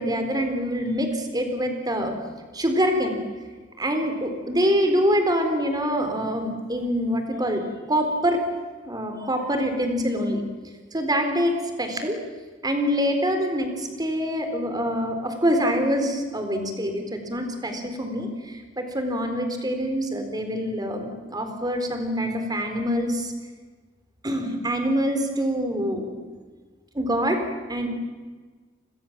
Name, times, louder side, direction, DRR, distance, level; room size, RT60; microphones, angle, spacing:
voice 1, 0.0-2.1 2.5-3.2 3.8-8.4 8.9-10.4 10.9-12.2 12.6-23.3 24.2-26.1 26.9-27.4 27.7-27.9, equal, 20° right, 6 dB, 4.0 m, -25 dB
30.0 x 21.5 x 7.4 m, 1.4 s
head